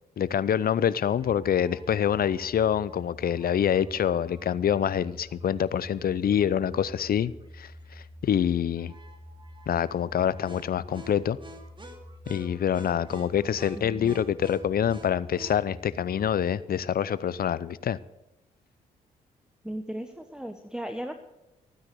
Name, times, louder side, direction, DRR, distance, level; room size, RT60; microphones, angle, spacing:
voice 1, 0.2-7.7 8.2-8.9 9.7-11.4 12.3-18.0, left 9 dB, 55° left, 0.7 m, -26 dB
sound 1, 1.1-16.4, equal, 25° right, 2.9 m, -46 dB
voice 2, 13.8-14.2 19.6-21.1, right 1 dB, 5° right, 1.1 m, -36 dB
15.0 x 9.6 x 6.9 m
hypercardioid pair, 45°, 19 cm